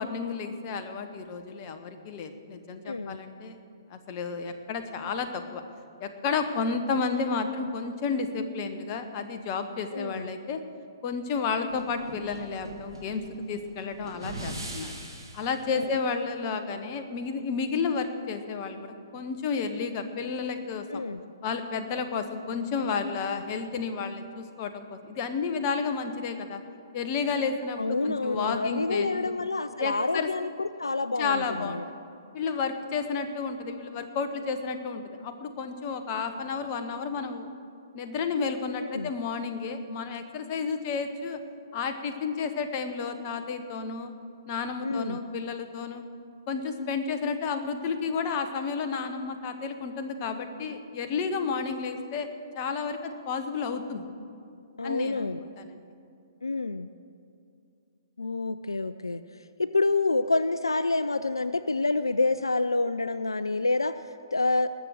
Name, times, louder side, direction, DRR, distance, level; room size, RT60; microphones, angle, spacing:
voice 1, 0.0-3.6 3.9-5.6 6.0-10.6 11.0-14.9 15.3-21.0 21.4-26.6 26.9-29.3 29.8-30.3 31.2-32.0 32.3-37.5 37.9-41.4 41.7-44.1 44.5-46.0 46.5-52.3 52.5-54.0 54.8-55.3 55.6-55.8, left 5 dB, 35° left, 8 dB, 1.1 m, -31 dB
voice 2, 2.8-3.2 9.9-10.3 15.7-15.9 20.9-21.2 27.8-31.9 38.8-39.1 44.8-45.2 54.8-55.4 56.4-56.9 58.2-64.7, left 3 dB, 80° left, 13 dB, 0.4 m, -28 dB
sound 1, 11.7-15.6, right 1 dB, 85° right, 2.9 m, -40 dB
20.0 x 7.0 x 6.3 m, 2.5 s
figure-of-eight pair, 125°, 2 cm